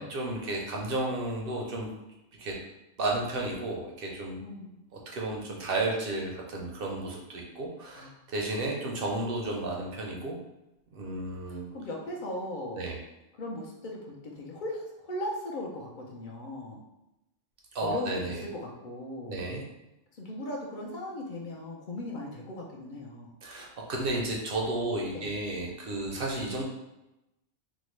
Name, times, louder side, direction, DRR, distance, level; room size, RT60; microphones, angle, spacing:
voice 1, 0.0-1.9 2.4-2.6 3.0-4.4 5.1-10.4 10.9-11.7 12.8-13.0 17.7-18.4 19.3-19.6 23.4-26.6, right 2 dB, 60° right, -1 dB, 0.7 m, -32 dB
voice 2, 4.4-4.8 7.9-8.1 11.5-12.8 13.4-16.8 17.8-19.4 20.1-23.3 25.1-25.3, left 1 dB, 55° left, -2 dB, 0.6 m, -38 dB
3.6 x 2.1 x 3.1 m, 0.93 s
omnidirectional pair, 1.3 m